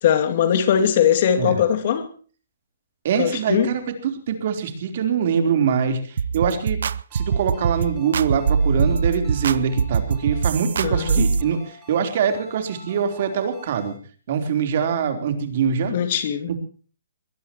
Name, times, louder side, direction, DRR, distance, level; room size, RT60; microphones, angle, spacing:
voice 1, 0.0-2.1 3.2-3.7 10.8-11.3 15.9-16.5, left 9 dB, 45° left, 2.5 m, -20 dB
voice 2, 3.0-6.8 7.1-14.0 14.3-15.9, right 7 dB, 50° right, 3.6 m, -23 dB
sound 1, 6.2-11.4, right 5 dB, 65° right, 0.7 m, -22 dB
Ringtone, 7.1-14.0, left 2 dB, 10° right, 7.2 m, -47 dB
22.5 x 19.0 x 3.0 m
hypercardioid pair, 155°, 0 cm